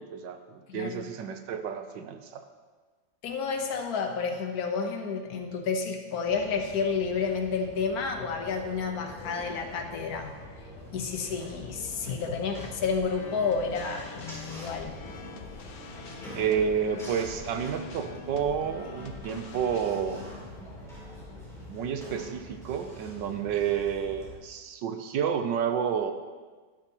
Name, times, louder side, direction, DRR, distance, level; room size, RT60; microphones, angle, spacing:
voice 1, 0.0-2.5 16.3-20.2 20.6-20.7 21.7-26.1, right 7 dB, 80° right, 7 dB, 1.4 m, -30 dB
voice 2, 3.2-10.3 10.9-14.9, left 5 dB, 60° left, 4 dB, 1.4 m, -30 dB
sound 1, 6.2-24.4, left 1 dB, ahead, 3.3 m, -45 dB
sound 2, 12.8-22.0, left 5 dB, 85° left, 0.5 m, -46 dB
12.0 x 10.5 x 3.0 m, 1.4 s
omnidirectional pair, 2.0 m